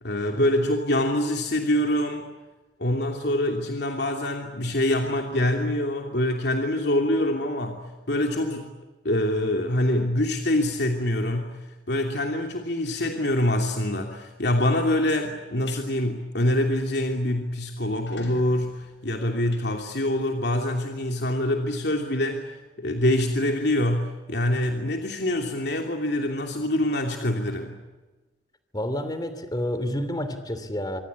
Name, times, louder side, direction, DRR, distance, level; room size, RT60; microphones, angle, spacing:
voice 1, 0.0-2.3 2.8-8.7 9.0-27.8, left 1 dB, 65° left, 3 dB, 2.9 m, -25 dB
sound 1, 15.4-15.8 16.3-16.5 16.9-17.0 17.2-17.3 17.8-20.4, left 3 dB, 80° left, 7.1 m, -46 dB
voice 2, 28.7-31.0, left 1 dB, 20° left, 11 dB, 3.0 m, -29 dB
25.5 x 25.5 x 8.4 m, 1.2 s
head